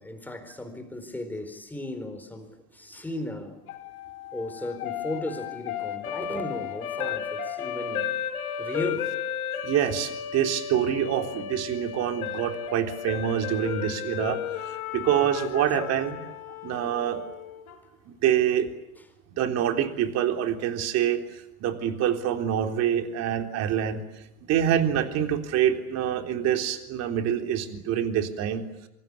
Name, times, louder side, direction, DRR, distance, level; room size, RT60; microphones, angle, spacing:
voice 1, 0.0-3.6 4.3-8.1 8.6-9.2, left 1 dB, 5° left, 8 dB, 4.3 m, -36 dB
sound 1, 3.7-17.8, left 8 dB, 75° left, 3.8 m, -34 dB
voice 2, 9.6-16.2 16.6-17.2 18.1-18.7 19.4-24.2 24.5-28.6, right 10 dB, 35° right, 5 dB, 3.7 m, -26 dB
27.0 x 25.0 x 8.6 m, 0.86 s
supercardioid pair, 135°, 44 cm